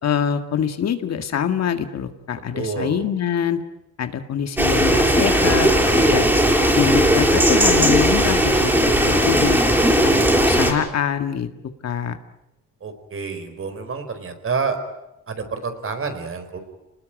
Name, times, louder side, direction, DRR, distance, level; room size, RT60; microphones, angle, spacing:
voice 1, 0.0-3.6 4.0-6.3 6.7-9.6 10.0-10.1 10.4-11.5 11.8-12.2, left 8 dB, 60° left, 8 dB, 1.9 m, -24 dB
voice 2, 2.5-3.1 12.8-14.8 15.3-16.6, right 5 dB, 45° right, 8 dB, 4.3 m, -28 dB
sound 1, 4.6-10.7, right 1 dB, 5° right, 5.9 m, -17 dB
27.5 x 19.5 x 9.0 m, 0.91 s
cardioid pair, 90°, 30 cm